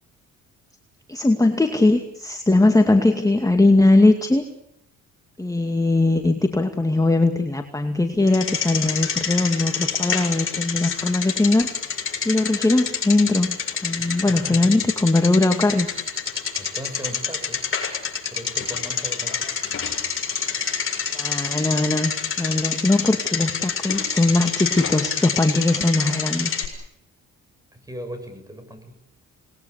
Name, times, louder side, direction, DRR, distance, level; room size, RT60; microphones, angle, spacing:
voice 1, 1.1-4.4 5.4-12.0 12.2-15.9 21.1-26.5, left 2 dB, 10° left, 5 dB, 2.3 m, -20 dB
Bicycle, 8.3-26.7, left 6 dB, 45° left, 7.3 m, -27 dB
voice 2, 14.0-14.6 16.6-17.6 18.3-19.5 27.7-28.8, equal, 10° right, 8 dB, 7.5 m, -37 dB
28.5 x 21.0 x 8.4 m, 0.76 s
cardioid pair, 90°, 30 cm